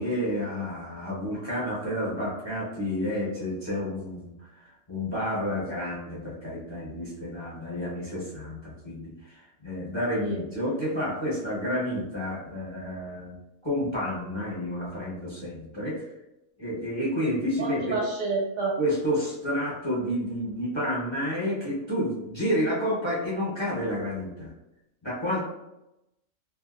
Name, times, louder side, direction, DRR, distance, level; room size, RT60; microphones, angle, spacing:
voice 1, 0.0-13.3 13.6-16.0 16.6-18.0 18.8-24.5 25.0-25.5, equal, 25° left, -7 dB, 0.8 m, -30 dB
voice 2, 17.6-18.7, right 3 dB, 70° right, -3 dB, 1.4 m, -29 dB
3.4 x 2.5 x 2.3 m, 0.90 s
omnidirectional pair, 1.5 m